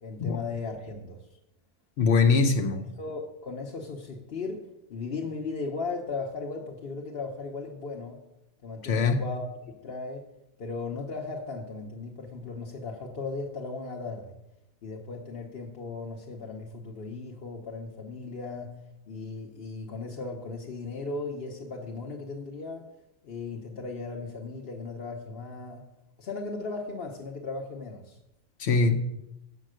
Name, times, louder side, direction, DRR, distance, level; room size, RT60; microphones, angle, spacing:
voice 1, 0.0-1.2 3.0-8.2 8.6-9.5 9.7-10.3 10.6-14.3 14.8-18.8 19.1-22.9 23.2-25.8 26.2-28.2, left 3 dB, 65° left, 0 dB, 1.1 m, -37 dB
voice 2, 2.0-2.9 8.8-9.2 28.6-28.9, left 4 dB, 90° left, 3 dB, 1.0 m, -22 dB
7.5 x 5.8 x 7.6 m, 0.89 s
omnidirectional pair, 1.1 m